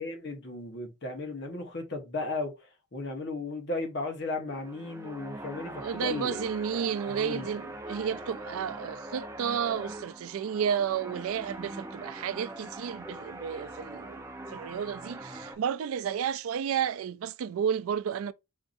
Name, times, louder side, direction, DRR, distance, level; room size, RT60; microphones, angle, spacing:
voice 1, 0.0-6.5 7.1-7.5, left 2 dB, 50° left, 1.0 m, -35 dB
sound 1, 4.4-15.5, right 1 dB, 15° right, 0.5 m, -42 dB
voice 2, 5.8-14.2 14.5-18.3, right 8 dB, 80° right, 0.3 m, -32 dB
5.6 x 2.6 x 2.4 m
head